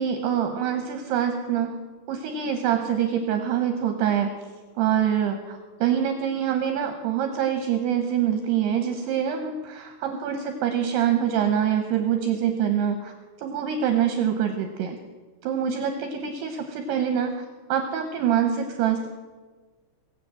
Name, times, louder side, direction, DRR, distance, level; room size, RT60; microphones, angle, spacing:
voice 1, 0.0-1.8 2.1-4.3 4.8-13.1 13.4-15.0 15.4-17.3 17.7-19.1, right 9 dB, 75° right, 6 dB, 2.6 m, -25 dB
20.0 x 8.1 x 7.6 m, 1.3 s
omnidirectional pair, 5.7 m